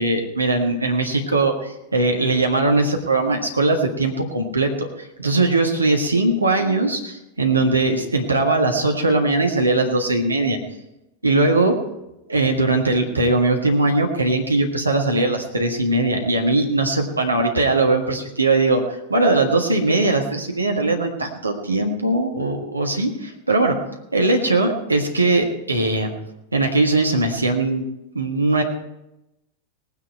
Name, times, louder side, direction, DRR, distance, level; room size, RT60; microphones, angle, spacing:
voice 1, 0.0-10.6 11.2-11.8 12.3-23.8 24.1-26.1 26.5-27.9 28.1-28.6, right 2 dB, 80° right, 2 dB, 1.6 m, -20 dB
19.0 x 9.7 x 4.5 m, 0.90 s
figure-of-eight pair, 90°, 0 cm